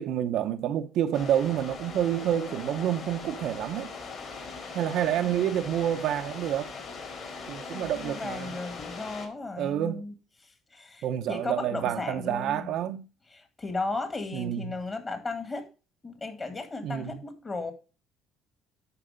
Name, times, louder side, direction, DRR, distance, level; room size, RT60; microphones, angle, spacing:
voice 1, 0.0-3.9 4.7-6.7 7.5-8.5 9.6-10.1 11.0-13.1 14.3-14.7 16.8-17.2, right 10 dB, 70° right, 0.7 m, -28 dB
sound 1, 1.1-9.3, left 4 dB, 50° left, 5.2 m, -40 dB
voice 2, 5.2-5.7 7.7-10.1 10.4-12.7 13.3-15.7 16.0-17.7, left 3 dB, 25° left, 2.1 m, -36 dB
11.5 x 4.8 x 5.1 m
cardioid pair, 120°, 0 cm